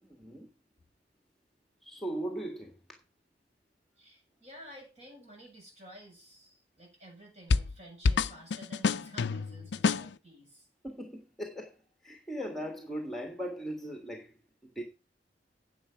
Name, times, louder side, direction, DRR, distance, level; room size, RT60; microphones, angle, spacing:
voice 1, 0.0-0.5 1.8-3.0 10.8-11.8 12.0-14.3 14.6-14.8, right 1 dB, ahead, 1.7 m, -39 dB
voice 2, 4.0-10.7, equal, 40° right, 7.5 m, -52 dB
sound 1, 7.5-7.8 8.0-10.1, left 4 dB, 80° left, 0.5 m, -28 dB
10.0 x 7.8 x 5.7 m
head